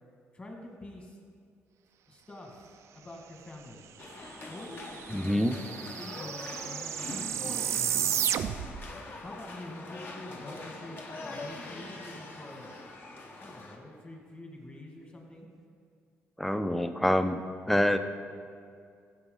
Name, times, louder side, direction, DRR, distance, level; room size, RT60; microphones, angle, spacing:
voice 1, 0.3-1.2 2.1-2.7 2.9-3.9 4.5-8.3 9.2-12.7 13.4-15.5, left 1 dB, 25° left, 0 dB, 2.0 m, -46 dB
sound 1, 4.0-13.8, left 2 dB, 45° left, 1.2 m, -43 dB
sound 2, 4.3-4.4 4.6-8.8, right 10 dB, 70° right, 0.4 m, -32 dB
voice 2, 5.1-5.6 16.4-17.4 17.7-18.0, left 1 dB, 5° left, 9 dB, 0.5 m, -26 dB
15.0 x 7.4 x 3.9 m, 2.3 s
cardioid pair, 105°, 5 cm